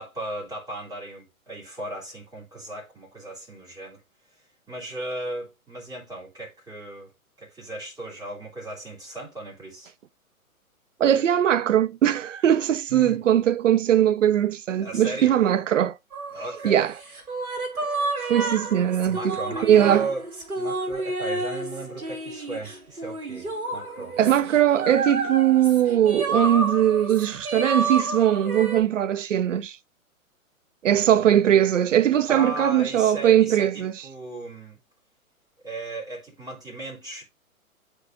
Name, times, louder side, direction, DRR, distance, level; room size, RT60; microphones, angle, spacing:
voice 1, 0.0-4.0 4.7-7.1 7.4-9.9 12.9-13.2 14.8-15.4 16.3-16.8 19.1-20.2 20.5-24.1 30.9-31.7 32.3-34.8 35.6-37.2, right 2 dB, 10° right, 3.2 m, -36 dB
voice 2, 11.0-15.9 16.6-16.9 18.3-19.4 19.6-20.1 24.2-29.8 30.8-33.9, right 10 dB, 60° right, 0.6 m, -20 dB
sound 1, 16.1-28.8, right 2 dB, 80° right, 2.3 m, -30 dB
10.0 x 4.4 x 2.6 m
figure-of-eight pair, 125°, 42 cm